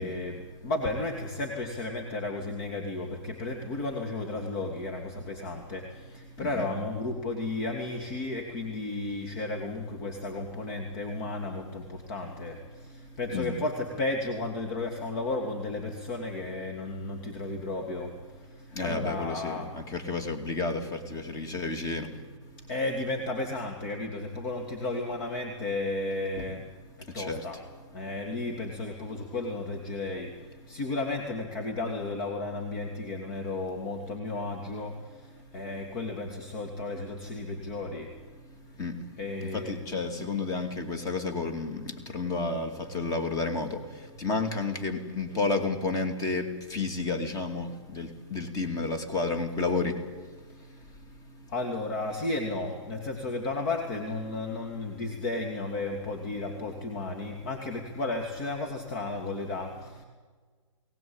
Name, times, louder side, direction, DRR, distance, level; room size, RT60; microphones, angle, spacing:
voice 1, 0.0-18.1 18.5-19.7 22.7-26.6 27.1-27.6 27.9-30.3 30.7-38.1 39.2-39.8 50.6-50.7 51.5-60.0, left 2 dB, 40° left, 3 dB, 2.8 m, -33 dB
voice 2, 18.8-22.1 26.4-26.5 27.2-27.4 38.8-38.9 39.5-41.8 42.1-43.8 44.2-49.9, left 3 dB, 20° left, 7 dB, 2.6 m, -31 dB
22.0 x 18.5 x 8.9 m, 1.5 s
hypercardioid pair, 135°, 16 cm